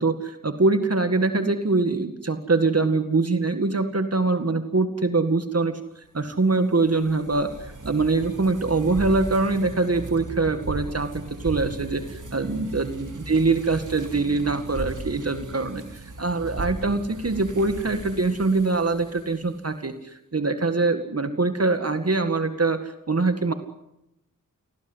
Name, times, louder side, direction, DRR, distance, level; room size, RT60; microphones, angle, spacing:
voice 1, 0.0-23.5, right 3 dB, 45° right, 8 dB, 2.1 m, -24 dB
sound 1, 6.2-19.6, right 2 dB, 65° right, 4.1 m, -37 dB
29.0 x 21.0 x 8.1 m, 0.86 s
wide cardioid pair, 80°, 33 cm